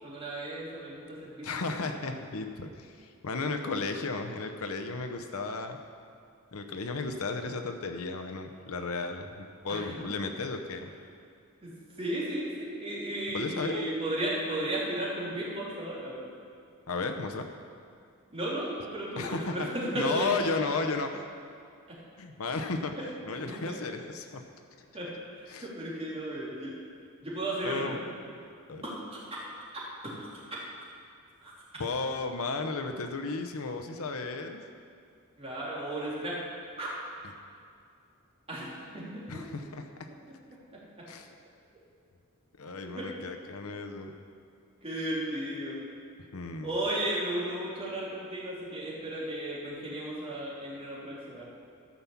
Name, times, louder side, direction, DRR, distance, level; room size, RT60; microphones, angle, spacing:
voice 1, 0.0-1.5 3.6-3.7 9.7-9.8 11.6-11.7 12.0-16.3 18.3-19.2 19.5-20.7 21.9-22.0 23.3-23.7 24.9-25.1 25.4-26.7 27.2-27.9 28.8-29.2 30.0-30.3 31.4-31.5 35.4-36.4 36.8-36.9 38.5-39.4 42.9-43.1 44.8-45.8 46.6-51.4, right 1 dB, 25° right, -6 dB, 3.0 m, -34 dB
voice 2, 1.4-5.8 6.5-10.9 13.3-13.8 16.9-17.5 19.2-19.7 19.9-21.2 22.2-22.9 23.3-24.4 25.5-25.7 27.6-28.0 28.7-28.8 31.8-34.6 39.3-39.9 41.1-41.3 42.6-44.1 46.3-46.7, left 3 dB, 70° left, 5 dB, 0.8 m, -34 dB
13.5 x 5.9 x 7.1 m, 2.4 s
head